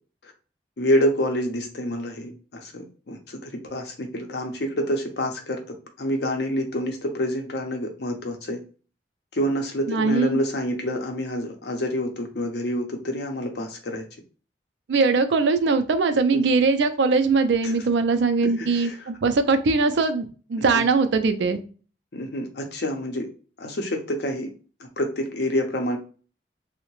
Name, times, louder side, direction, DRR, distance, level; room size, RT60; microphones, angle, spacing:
voice 1, 0.8-5.6 6.0-8.6 9.3-14.0 16.3-16.4 17.6-17.7 18.4-19.0 20.7-20.9 22.1-23.3 23.6-24.5 25.0-26.0, equal, 70° left, 3 dB, 0.6 m, -27 dB
voice 2, 9.9-10.4 14.9-21.6, right 4 dB, 80° right, 9 dB, 0.4 m, -21 dB
2.7 x 2.1 x 3.0 m, 0.38 s
head